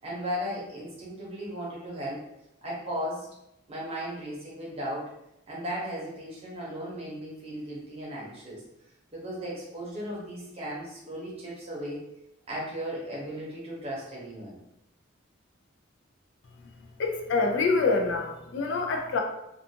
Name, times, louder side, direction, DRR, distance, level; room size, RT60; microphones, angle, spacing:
voice 1, 0.0-2.2 2.6-3.3 3.7-5.1 5.5-8.6 9.1-12.0 12.5-14.6, equal, 30° right, -5 dB, 0.8 m, -36 dB
voice 2, 17.0-19.2, left 4 dB, 65° left, 2 dB, 0.4 m, -26 dB
2.4 x 2.3 x 2.7 m, 0.84 s
head